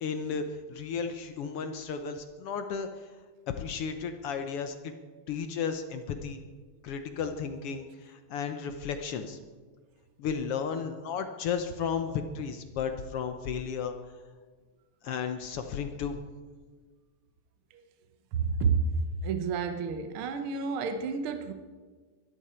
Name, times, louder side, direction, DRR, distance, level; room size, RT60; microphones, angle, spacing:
voice 1, 0.0-2.9 3.5-4.9 5.3-6.4 6.8-9.4 10.2-13.9 15.0-16.2, left 6 dB, 70° left, 7 dB, 1.4 m, -34 dB
voice 2, 18.3-18.9 19.2-21.5, right 5 dB, 65° right, 7 dB, 1.3 m, -30 dB
22.5 x 13.0 x 4.4 m, 1.5 s
omnidirectional pair, 3.5 m